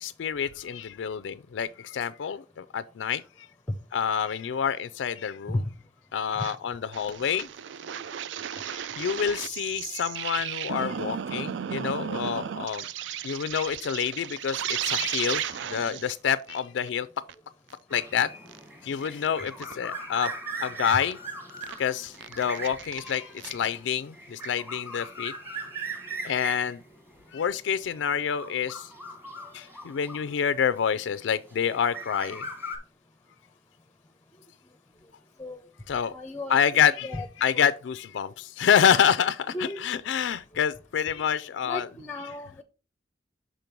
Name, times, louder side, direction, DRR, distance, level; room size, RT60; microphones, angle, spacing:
voice 1, 0.0-3.5 3.9-5.7 6.1-7.5 8.5-12.8 13.2-17.1 17.9-18.3 18.8-20.3 20.6-21.2 21.8-25.3 26.2-26.8 27.3-28.9 29.5-32.5 35.9-36.1 36.5-42.4, left 8 dB, 80° left, 0.4 m, -27 dB
sound 1, 6.4-6.6 6.9-16.1 16.5-16.6 16.9-17.0 17.3-17.4 17.7-17.8 18.2-18.6 19.0-19.7 20.3-20.4 21.1-21.2 21.5-21.8 22.1-23.7, right 9 dB, 70° right, 0.4 m, -34 dB
sound 2, 17.9-30.8 31.5-32.8, right 2 dB, 15° right, 1.4 m, -39 dB
voice 2, 36.1-36.6 37.0-37.3 37.5-37.7 39.5-40.0 41.6-42.6, left 1 dB, 10° left, 0.5 m, -34 dB
6.2 x 5.2 x 4.5 m
head